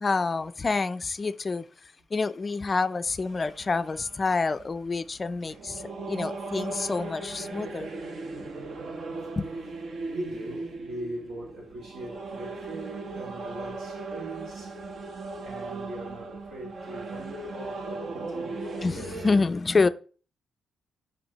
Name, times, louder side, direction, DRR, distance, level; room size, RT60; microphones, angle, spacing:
voice 1, 0.0-1.7 2.1-7.9 9.4-9.5 18.8-19.9, left 4 dB, 35° left, 0.3 m, -27 dB
sound 1, 3.2-19.4, right 3 dB, 65° right, 1.0 m, -38 dB
voice 2, 10.1-18.9, right 1 dB, 80° right, 2.4 m, -41 dB
6.1 x 5.1 x 3.0 m
cardioid pair, 85°, 0 cm